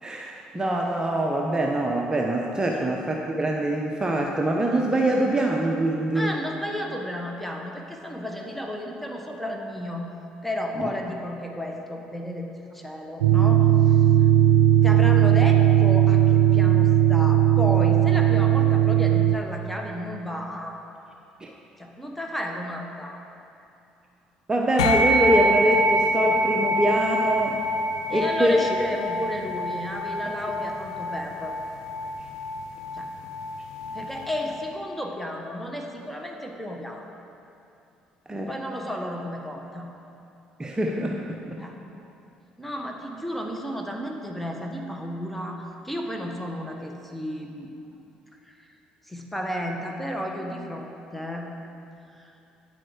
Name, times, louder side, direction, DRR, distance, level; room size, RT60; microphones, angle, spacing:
voice 1, 0.0-6.3 10.8-10.9 21.4-21.5 24.5-27.6 28.1-28.6 38.3-38.6 40.6-41.6, right 1 dB, 20° right, 0 dB, 0.9 m, -24 dB
voice 2, 6.1-10.1 10.4-14.0 14.8-20.8 21.8-23.2 28.1-31.5 32.9-33.1 33.9-37.1 38.5-39.9 41.6-41.8 42.6-47.7 48.5-48.7 49.1-51.5 52.1-52.3, left 1 dB, 5° left, 1 dB, 1.5 m, -33 dB
sound 1, 13.2-19.4, right 11 dB, 85° right, 0.5 m, -18 dB
sound 2, 24.8-34.5, equal, 90° left, 0.6 m, -26 dB
9.6 x 7.5 x 5.1 m, 2.7 s
hypercardioid pair, 55°, 3 cm